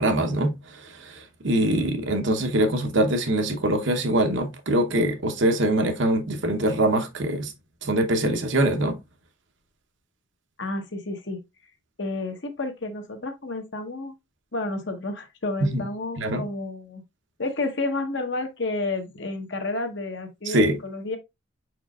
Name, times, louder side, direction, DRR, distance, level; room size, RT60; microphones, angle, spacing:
voice 1, 0.0-7.5 7.8-9.0 15.6-15.8 16.2-16.5 20.5-20.8, right 1 dB, 65° right, 0.9 m, -23 dB
voice 2, 10.6-11.4 12.0-14.1 14.5-17.0 17.4-21.2, left 2 dB, 60° left, 1.1 m, -30 dB
5.0 x 4.6 x 2.3 m
head